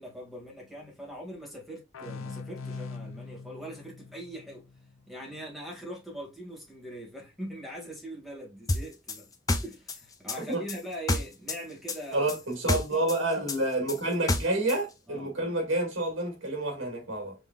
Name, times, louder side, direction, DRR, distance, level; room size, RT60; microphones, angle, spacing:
voice 1, 0.0-4.7 5.1-9.3 9.6-12.3 12.7-13.1 15.1-15.3, right 1 dB, ahead, 1.8 m, -42 dB
sound 1, 1.9-5.4, left 4 dB, 90° left, 0.6 m, -42 dB
sound 2, 8.7-11.6 11.9-14.8, left 2 dB, 15° left, 0.5 m, -29 dB
voice 2, 12.1-17.3, right 2 dB, 70° right, 2.0 m, -29 dB
5.5 x 3.4 x 2.3 m
head